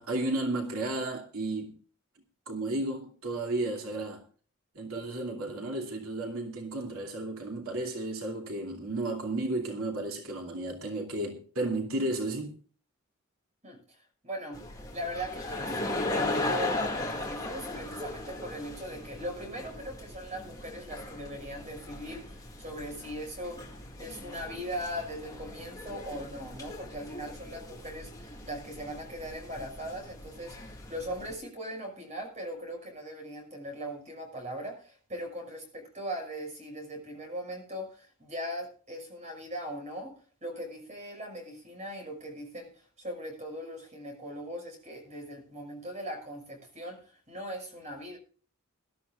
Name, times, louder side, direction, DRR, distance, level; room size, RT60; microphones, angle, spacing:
voice 1, 0.0-1.7 2.5-4.2 4.7-12.5, right 2 dB, 85° right, 2.6 m, -33 dB
voice 2, 13.6-14.6 14.9-40.1 40.4-48.2, equal, 30° right, 6.2 m, -40 dB
sound 1, 14.5-31.3, left 2 dB, 15° left, 2.4 m, -38 dB
21.0 x 13.0 x 2.5 m
head